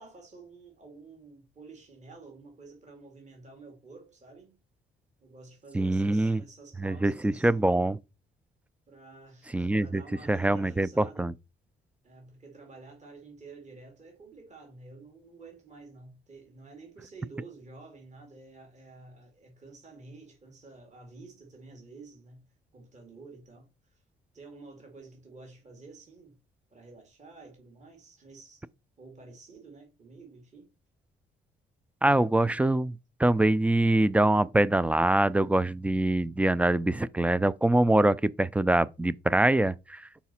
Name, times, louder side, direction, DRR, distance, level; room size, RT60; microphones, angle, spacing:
voice 1, 0.0-4.6 5.2-7.7 8.9-11.3 12.0-22.4 22.7-24.0 24.3-26.3 26.7-28.7 29.0-30.7, right 3 dB, 35° right, 2.3 m, -50 dB
voice 2, 5.7-6.4 6.8-8.0 9.5-10.0 10.3-11.3 32.0-40.0, right 1 dB, 5° right, 0.3 m, -24 dB
5.7 x 4.1 x 4.2 m
cardioid pair, 90°, 20 cm